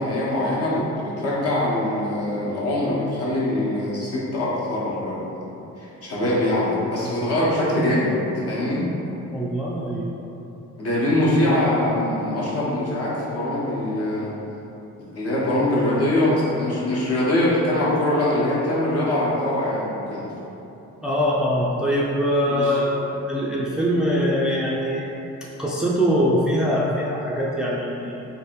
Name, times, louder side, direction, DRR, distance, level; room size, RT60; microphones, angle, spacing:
voice 1, 0.0-5.5 5.8-8.2 8.5-8.9 10.8-14.4 15.1-20.3 22.5-22.8, left 1 dB, 55° left, -7 dB, 1.2 m, -23 dB
voice 2, 9.3-10.1 21.0-25.1 25.6-28.2, equal, ahead, -5 dB, 0.4 m, -23 dB
3.2 x 2.6 x 4.5 m, 3.0 s
cardioid pair, 90°, 30 cm